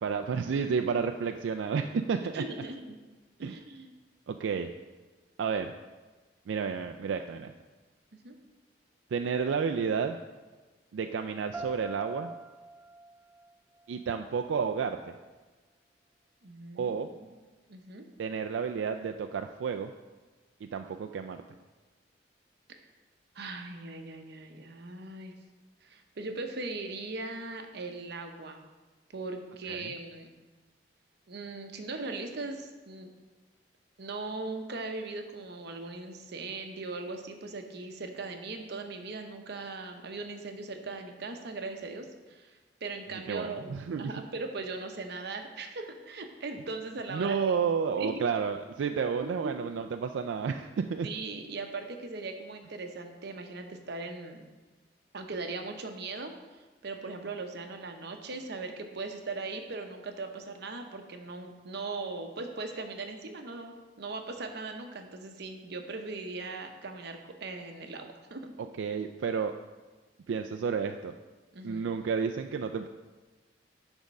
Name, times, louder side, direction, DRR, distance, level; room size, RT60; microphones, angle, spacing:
voice 1, 0.0-2.4 3.4-3.6 4.3-4.7 5.4-5.7 6.5-7.5 9.1-10.2 10.9-12.3 13.9-15.1 16.8-17.1 18.2-19.9 20.7-21.4 29.7-29.9 43.3-44.1 47.1-51.1 68.8-69.5 70.3-71.1 71.6-72.9, right 6 dB, 90° right, 5 dB, 0.3 m, -31 dB
voice 2, 2.3-3.0 3.4-3.9 8.2-8.4 16.4-17.0 17.7-18.1 23.3-25.3 25.8-28.6 29.1-30.3 31.3-33.1 34.0-47.6 47.9-48.2 49.2-49.5 51.0-54.5 55.1-56.3 56.8-68.5 71.5-71.9, right 3 dB, 65° right, 5 dB, 0.8 m, -39 dB
sound 1, 11.5-14.5, right 2 dB, 5° right, 0.6 m, -45 dB
10.0 x 3.6 x 5.3 m, 1.3 s
head